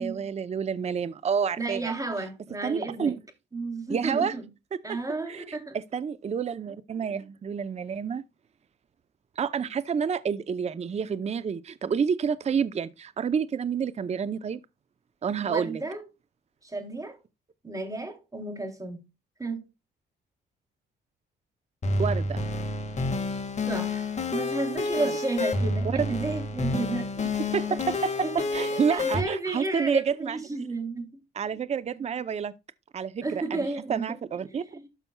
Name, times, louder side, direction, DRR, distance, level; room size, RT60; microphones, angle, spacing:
voice 1, 0.0-1.9 2.6-3.2 3.9-4.3 4.7-4.8 5.3-8.2 9.4-14.6 15.2-15.8 22.0-22.4 24.7-25.1 25.8-26.1 27.4-30.4 31.4-32.5 32.9-34.6, right 6 dB, 35° right, 0.6 m, -29 dB
voice 2, 1.6-3.1 3.5-4.4 4.8-5.8 15.5-16.0 16.6-17.2 17.6-19.0 19.4-19.6 23.7-27.6 28.2-31.1 33.2-34.2 34.5-34.9, right 2 dB, 15° right, 2.8 m, -33 dB
sound 1, 21.8-29.2, left 2 dB, 35° left, 1.8 m, -29 dB
12.5 x 5.7 x 2.2 m
cardioid pair, 90°, 20 cm